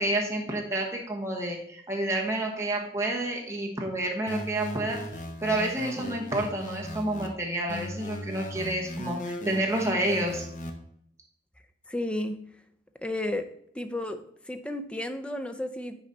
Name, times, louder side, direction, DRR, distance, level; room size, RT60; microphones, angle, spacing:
voice 1, 0.0-5.0 5.4-10.4, right 1 dB, 15° right, -1 dB, 1.2 m, -29 dB
sound 1, 4.3-7.3 7.7-10.7, left 1 dB, 45° left, 0.9 m, -37 dB
voice 2, 11.9-12.4 13.0-13.5 13.7-16.0, left 1 dB, 5° left, 7 dB, 0.5 m, -32 dB
10.0 x 4.0 x 4.1 m, 0.69 s
head